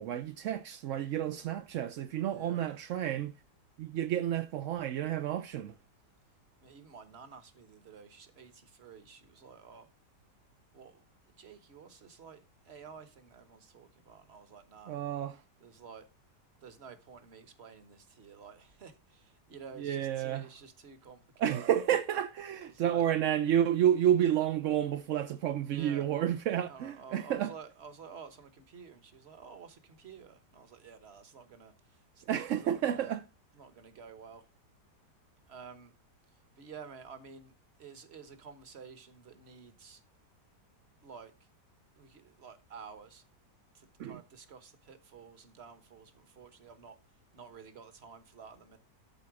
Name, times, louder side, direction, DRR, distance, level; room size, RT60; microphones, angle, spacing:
voice 1, 0.0-3.3 3.8-5.8 14.9-15.4 19.8-20.5 21.4-27.5 32.3-33.2 44.0-44.2, right 10 dB, 65° right, 0.8 m, -30 dB
voice 2, 2.1-2.8 6.6-9.9 10.7-11.0 11.4-14.9 15.6-16.0 16.6-21.8 22.6-23.1 24.3-24.5 25.6-26.1 26.6-33.1 33.5-34.4 35.5-35.9 36.6-37.5 37.8-40.0 41.0-41.3 42.0-43.2 43.7-47.0 47.3-48.8, right 6 dB, 40° right, 1.3 m, -51 dB
12.5 x 4.2 x 4.7 m
omnidirectional pair, 1.8 m